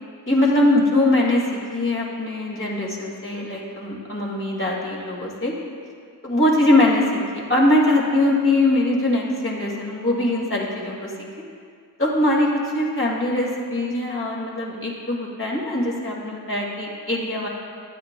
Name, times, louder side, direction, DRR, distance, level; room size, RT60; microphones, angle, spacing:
voice 1, 0.3-5.5 6.2-11.3 12.0-17.5, left 1 dB, 30° left, -3 dB, 2.1 m, -22 dB
12.5 x 9.1 x 2.2 m, 2.2 s
cardioid pair, 50°, 42 cm